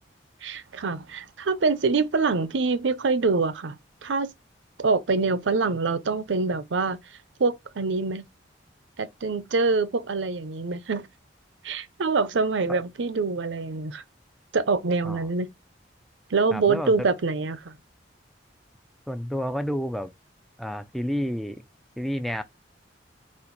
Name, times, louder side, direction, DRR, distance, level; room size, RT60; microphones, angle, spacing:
voice 1, 0.4-4.3 4.8-7.0 7.4-8.3 9.0-11.1 11.6-14.0 14.5-15.5 16.3-17.7, right 4 dB, 75° right, 0.6 m, -25 dB
voice 2, 16.5-17.1 19.1-20.1 20.6-21.6 22.0-22.4, equal, ahead, 0.3 m, -30 dB
4.3 x 2.5 x 3.9 m
head